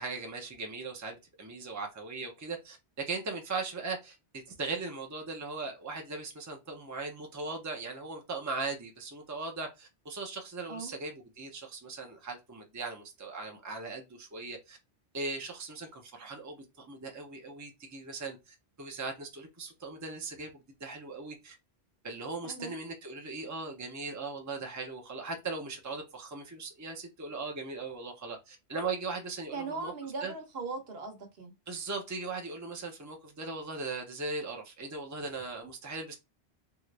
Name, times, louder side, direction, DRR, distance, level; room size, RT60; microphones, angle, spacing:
voice 1, 0.0-2.8 3.0-14.8 15.1-20.5 20.8-21.5 22.0-29.9 30.2-30.3 31.7-36.1, right 3 dB, 20° right, 0.6 m, -39 dB
voice 2, 22.4-22.7 29.5-31.5, right 4 dB, 70° right, 1.1 m, -39 dB
2.8 x 2.5 x 3.2 m
omnidirectional pair, 1.1 m